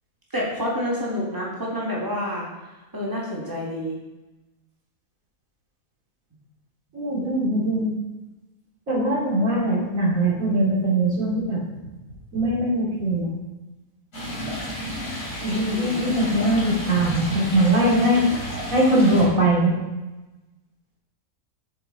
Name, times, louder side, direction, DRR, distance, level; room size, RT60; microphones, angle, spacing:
voice 1, 0.3-2.5 2.9-4.0 15.7-16.1, equal, 15° right, -5 dB, 2.1 m, -28 dB
voice 2, 6.9-7.9 8.9-11.6 12.3-13.3 15.4-18.2 18.7-19.7, right 1 dB, 60° right, -6 dB, 2.9 m, -21 dB
Stream, 14.1-19.2, equal, 60° left, 3.3 m, -32 dB
8.0 x 6.8 x 4.0 m, 1.1 s
omnidirectional pair, 1.6 m